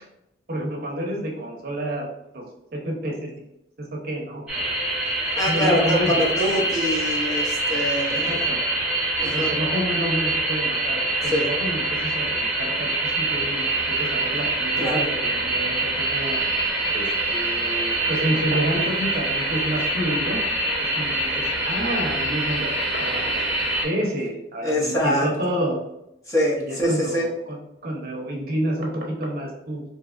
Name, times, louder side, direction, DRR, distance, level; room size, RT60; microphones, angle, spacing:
voice 1, 0.5-2.1 2.3-2.4 2.7-3.3 3.8-4.8 5.5-6.2 8.1-8.6 9.2-16.4 16.9-20.4 20.9-23.4 23.8-25.8 26.6-29.8, right 1 dB, 55° right, 0 dB, 0.7 m, -29 dB
sound 1, 4.5-23.8, right 2 dB, 5° right, 0.9 m, -25 dB
voice 2, 5.3-8.4 9.2-9.5 11.3-11.5 14.8-15.0 24.6-25.3 26.3-27.3, equal, 20° left, -4 dB, 0.6 m, -24 dB
3.3 x 2.8 x 2.4 m, 0.84 s
head